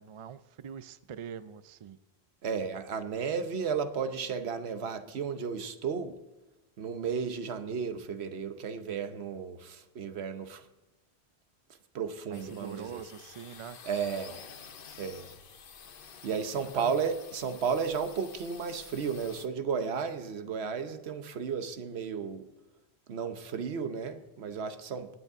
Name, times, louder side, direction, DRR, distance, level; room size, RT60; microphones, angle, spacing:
voice 1, 0.0-2.0 12.3-13.8 16.7-17.0, right 8 dB, 50° right, 0.3 m, -44 dB
voice 2, 2.4-6.2 6.8-10.7 11.9-13.0 13.8-14.5 15.0-15.3 16.2-22.5 23.1-25.1, right 6 dB, 85° right, 1.1 m, -33 dB
sound 1, 12.3-19.5, left 6 dB, 60° left, 0.9 m, -50 dB
19.0 x 8.1 x 3.6 m
omnidirectional pair, 1.1 m